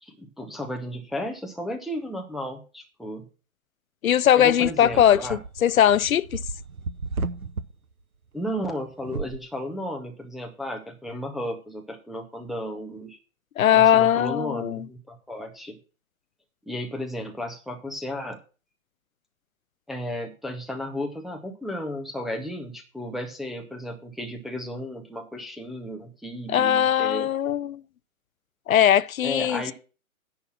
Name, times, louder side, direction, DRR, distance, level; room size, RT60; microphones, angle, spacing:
voice 1, 0.0-3.3 4.3-5.4 8.3-13.2 13.7-15.8 16.7-18.4 19.9-27.3 29.2-29.7, equal, ahead, 0.5 m, -34 dB
voice 2, 4.0-6.4 13.6-14.9 26.5-27.8 28.7-29.7, left 10 dB, 75° left, 0.5 m, -20 dB
sound 1, 4.5-7.7 9.0-9.4, right 3 dB, 90° right, 0.9 m, -34 dB
10.0 x 5.8 x 6.1 m
figure-of-eight pair, 125°, 42 cm